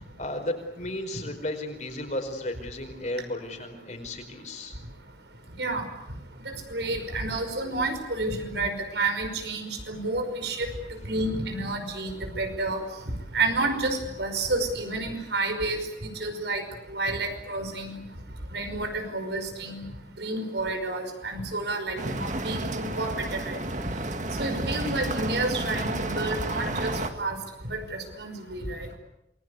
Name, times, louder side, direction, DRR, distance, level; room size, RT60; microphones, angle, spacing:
voice 1, 0.0-4.8, left 1 dB, 40° left, 5 dB, 4.9 m, -34 dB
voice 2, 6.5-10.7 11.1-12.8 13.3-16.6 16.9-18.0 18.5-19.9 20.2-23.6 24.4-27.4 27.6-28.9, right 2 dB, 75° right, 6 dB, 5.4 m, -30 dB
sound 1, 22.0-27.1, right 1 dB, 45° right, 2.0 m, -31 dB
28.0 x 22.0 x 8.3 m, 0.85 s
head